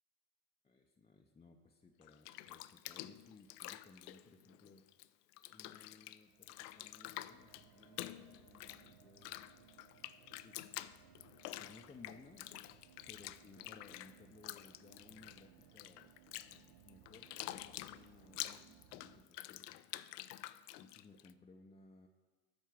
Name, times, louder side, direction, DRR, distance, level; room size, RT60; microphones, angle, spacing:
voice 1, 0.6-4.8 5.5-9.3 10.4-10.6 11.6-12.5 13.1-16.1 16.9-19.8 20.8-22.1, left 3 dB, 15° left, 0 dB, 0.6 m, -61 dB
Bathtub (filling or washing), 2.0-5.1 5.3-21.3, left 15 dB, 75° left, 0.5 m, -48 dB
sound 1, 6.3-19.2, right 10 dB, 50° right, 0.7 m, -64 dB
12.5 x 4.6 x 6.0 m, 1.4 s
hypercardioid pair, 70°, 49 cm